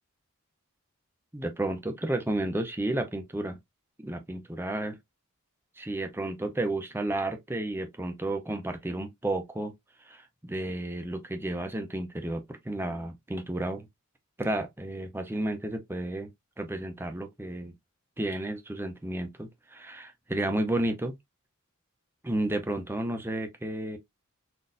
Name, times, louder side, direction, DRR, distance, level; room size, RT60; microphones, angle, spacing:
voice 1, 1.3-3.6 4.0-5.0 5.8-9.7 10.0-13.9 14.4-16.3 16.6-17.7 18.2-21.1 22.2-24.0, right 1 dB, 10° right, 0.5 m, -32 dB
3.9 x 2.5 x 2.5 m
head